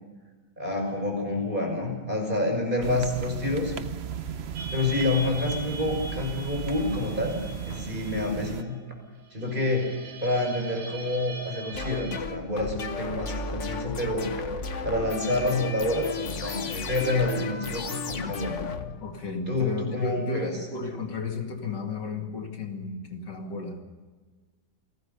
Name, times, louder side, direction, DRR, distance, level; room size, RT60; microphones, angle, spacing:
voice 1, 0.6-3.7 4.7-7.4 7.6-8.8 9.3-9.9 10.2-14.3 14.8-18.6 19.5-20.5, left 2 dB, 25° right, 2 dB, 6.1 m, -28 dB
sound 1, 2.8-8.6, right 7 dB, 50° right, 0.8 m, -35 dB
sound 2, 4.6-12.2, right 2 dB, 80° right, 3.0 m, -41 dB
sound 3, 11.7-19.5, left 4 dB, 45° left, 1.4 m, -34 dB
voice 2, 19.0-23.8, left 4 dB, 70° left, 3 dB, 3.0 m, -34 dB
29.0 x 19.5 x 5.5 m, 1.4 s
omnidirectional pair, 1.9 m